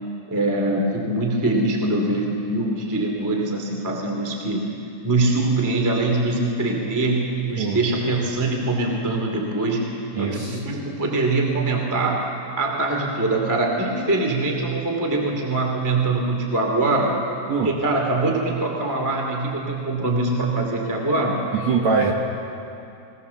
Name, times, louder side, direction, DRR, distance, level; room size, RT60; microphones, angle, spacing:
voice 1, 0.3-4.6 5.0-9.9 10.2-12.2 12.6-17.1 17.6-21.4, right 2 dB, 5° right, 1 dB, 1.5 m, -23 dB
voice 2, 10.1-10.6 17.5-17.7 21.5-22.1, right 5 dB, 60° right, -1 dB, 1.9 m, -22 dB
21.0 x 19.5 x 7.1 m, 2.7 s
omnidirectional pair, 5.0 m